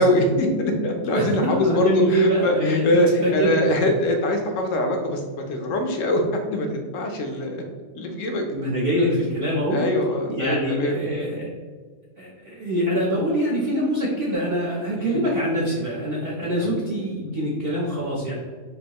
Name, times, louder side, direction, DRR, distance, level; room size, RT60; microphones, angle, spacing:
voice 1, 0.0-5.2 5.5-6.2 6.5-7.6 7.9-8.4 9.7-10.9 14.9-15.3 16.6-16.7, left 1 dB, 65° left, 3 dB, 1.0 m, -23 dB
voice 2, 1.1-2.9 3.2-3.6 8.5-9.8 10.3-11.5 12.2-18.3, equal, 50° right, -6 dB, 0.8 m, -24 dB
5.3 x 2.7 x 2.9 m, 1.5 s
omnidirectional pair, 1.5 m